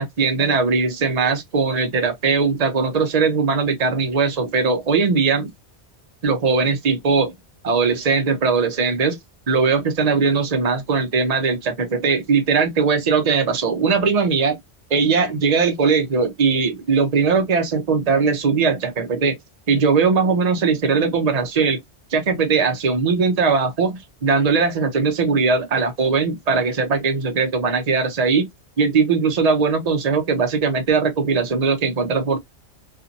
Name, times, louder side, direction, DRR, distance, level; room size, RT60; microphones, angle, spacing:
voice 1, 0.0-5.5 6.2-7.3 7.6-9.2 9.5-14.5 14.9-19.4 19.7-21.8 22.1-28.5 28.8-32.4, right 5 dB, 40° right, 0.8 m, -20 dB
2.7 x 2.5 x 2.5 m
omnidirectional pair, 1.2 m